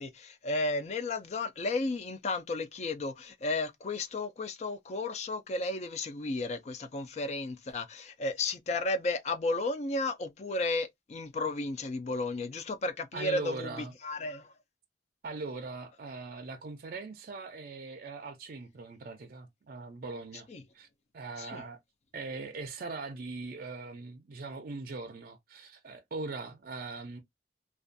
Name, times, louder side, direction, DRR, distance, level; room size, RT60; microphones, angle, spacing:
voice 1, 0.0-14.5 20.5-20.6 21.4-21.6, left 2 dB, 40° left, 0.4 m, -33 dB
voice 2, 13.1-13.9 15.2-20.5 20.7-20.9 21.1-21.8 22.1-27.2, right 3 dB, 50° right, 0.4 m, -41 dB
2.5 x 2.2 x 2.5 m
head